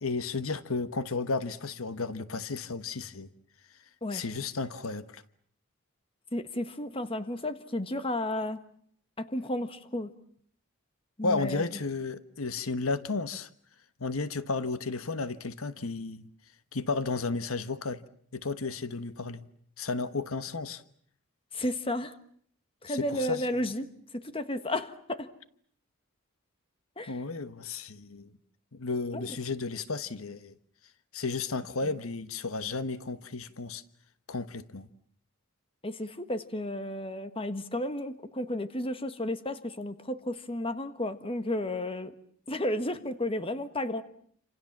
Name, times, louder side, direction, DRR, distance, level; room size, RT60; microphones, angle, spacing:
voice 1, 0.0-3.3 4.1-5.2 11.2-13.5 14.0-16.3 16.7-18.0 18.3-19.5 19.8-20.8 22.9-23.4 27.1-28.3 28.7-30.5 31.1-33.8 34.3-34.9, left 3 dB, 85° left, 1.2 m, -33 dB
voice 2, 6.3-8.6 9.2-10.1 11.2-11.7 21.5-22.1 22.8-23.9 24.1-25.3 27.0-27.2 29.1-29.3 35.8-42.1 42.5-44.0, left 1 dB, 25° left, 1.5 m, -33 dB
28.0 x 27.5 x 7.4 m
head